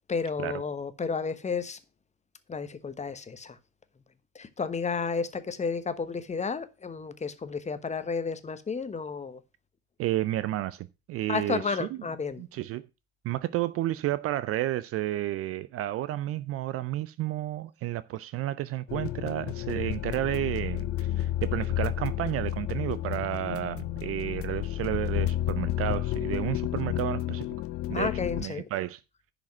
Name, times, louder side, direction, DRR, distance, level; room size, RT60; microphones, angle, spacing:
voice 1, 0.1-1.8 2.5-3.6 4.3-9.4 11.3-12.4 27.9-28.7, left 5 dB, 20° left, 1.1 m, -32 dB
voice 2, 10.0-11.9 12.4-12.9 13.2-27.4 27.9-28.1 28.4-29.0, right 14 dB, 40° right, 0.5 m, -31 dB
sound 1, 18.9-28.4, left 13 dB, 40° left, 0.5 m, -31 dB
10.5 x 5.2 x 6.1 m
hypercardioid pair, 70°, 36 cm